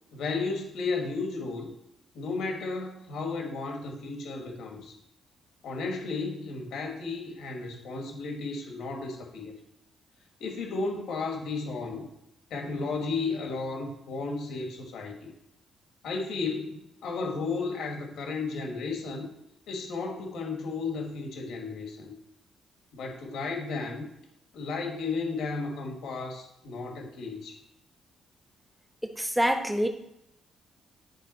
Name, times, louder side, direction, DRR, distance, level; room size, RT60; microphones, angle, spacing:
voice 1, 0.1-1.7 2.2-4.9 5.6-9.5 10.4-12.1 12.5-15.3 16.0-19.3 19.7-22.1 22.9-24.0 24.5-27.6, left 4 dB, 80° left, 1 dB, 1.9 m, -33 dB
voice 2, 29.0-29.9, equal, 5° right, 6 dB, 1.0 m, -26 dB
10.5 x 3.7 x 4.4 m, 0.81 s
cardioid pair, 90°, 0 cm